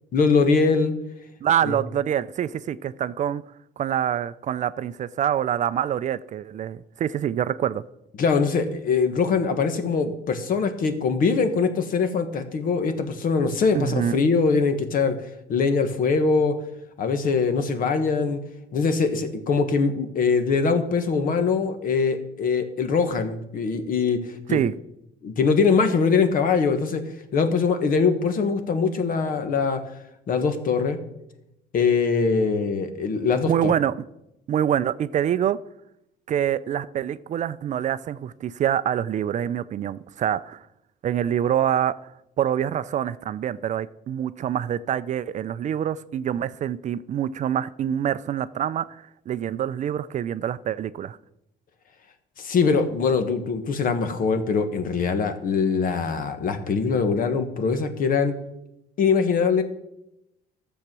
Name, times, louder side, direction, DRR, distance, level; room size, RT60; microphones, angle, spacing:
voice 1, 0.1-0.9 1.6-1.8 8.2-15.2 15.5-16.5 17.0-18.4 18.7-24.6 25.2-27.0 27.3-29.8 30.3-31.0 31.7-33.7 52.4-58.3 59.0-59.6, left 5 dB, 55° left, 1.4 m, -22 dB
voice 2, 1.4-3.4 3.8-7.8 13.7-14.2 24.5-24.7 33.5-34.0 34.5-35.6 36.3-40.7 41.0-41.9 42.4-51.2, right 10 dB, 45° right, 0.4 m, -25 dB
12.0 x 7.2 x 6.1 m
cardioid pair, 110°, 17 cm